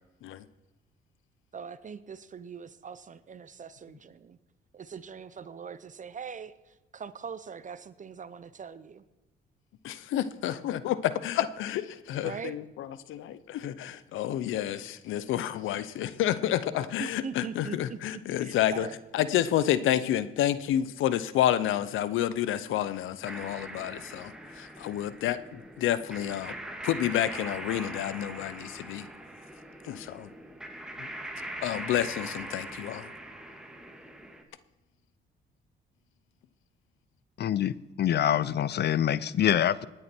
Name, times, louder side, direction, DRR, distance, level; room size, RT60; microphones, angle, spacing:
voice 1, 1.5-4.4 4.7-9.0 12.2-12.5 17.0-18.9, right 6 dB, 40° right, 15 dB, 0.8 m, -42 dB
voice 2, 9.8-18.9 19.1-26.5 26.8-29.1 29.8-30.3 31.0-31.1 31.6-33.1, left 11 dB, 85° left, 15 dB, 0.8 m, -29 dB
sound 1, 23.2-34.4, right 1 dB, 5° right, 2.1 m, -42 dB
voice 3, 37.4-39.9, left 10 dB, 55° left, 19 dB, 0.6 m, -25 dB
19.0 x 10.0 x 4.5 m, 1.1 s
cardioid pair, 90°, 20 cm